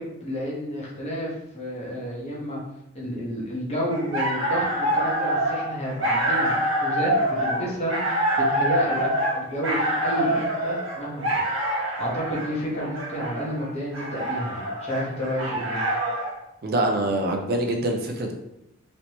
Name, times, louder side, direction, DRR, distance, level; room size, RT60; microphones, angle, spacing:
voice 1, 0.0-2.6 2.9-7.1 7.4-9.1 9.3-11.4 11.7-15.8, equal, 35° left, -4 dB, 0.9 m, -30 dB
sound 1, 3.9-16.3, right 1 dB, 85° right, 1.0 m, -26 dB
voice 2, 16.6-18.3, right 1 dB, 50° right, 1 dB, 0.5 m, -24 dB
3.1 x 2.9 x 2.8 m, 0.84 s
head